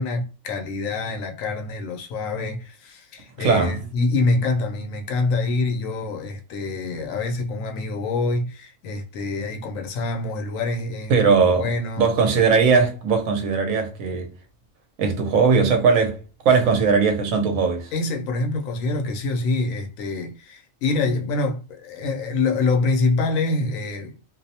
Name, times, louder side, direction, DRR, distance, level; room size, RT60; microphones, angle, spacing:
voice 1, 0.0-12.3 17.9-24.1, left 3 dB, 85° left, 1.0 m, -26 dB
voice 2, 3.4-3.8 11.1-11.7 12.0-14.3 15.0-16.2 16.4-17.9, right 5 dB, 90° right, 1.0 m, -19 dB
2.5 x 2.0 x 2.6 m
omnidirectional pair, 1.4 m